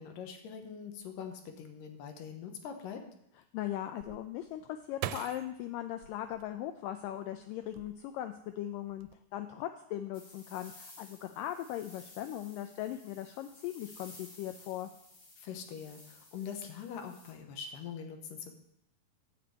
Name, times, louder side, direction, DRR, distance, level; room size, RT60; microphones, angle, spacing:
voice 1, 0.0-3.1 15.4-18.6, left 7 dB, 70° left, 5 dB, 2.6 m, -43 dB
voice 2, 3.5-14.9, left 12 dB, 85° left, 8 dB, 1.9 m, -39 dB
sound 1, 4.0-7.1 7.6-8.4 8.7-9.1, right 12 dB, 85° right, 2.5 m, -43 dB
sound 2, 10.1-17.3, left 2 dB, 30° left, 1.8 m, -55 dB
11.5 x 5.2 x 8.1 m, 0.77 s
omnidirectional pair, 4.5 m